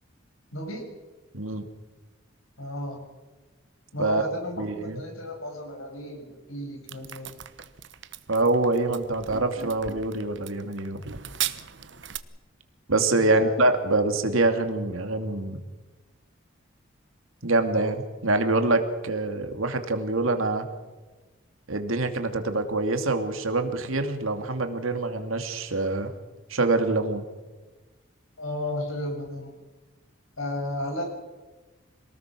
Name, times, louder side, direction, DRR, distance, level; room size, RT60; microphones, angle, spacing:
voice 1, 0.5-0.8 2.6-3.0 3.9-7.4 13.1-13.5 28.4-29.6 30.4-31.0, left 1 dB, 90° left, 3 dB, 6.7 m, -33 dB
voice 2, 1.3-1.6 4.0-4.3 4.6-5.0 8.3-11.2 12.9-15.6 17.4-20.7 21.7-26.1 26.5-27.2, right 2 dB, 85° right, 7 dB, 2.6 m, -25 dB
sound 1, 6.9-12.2, right 11 dB, 60° right, 1.1 m, -37 dB
27.0 x 19.5 x 6.2 m, 1.2 s
head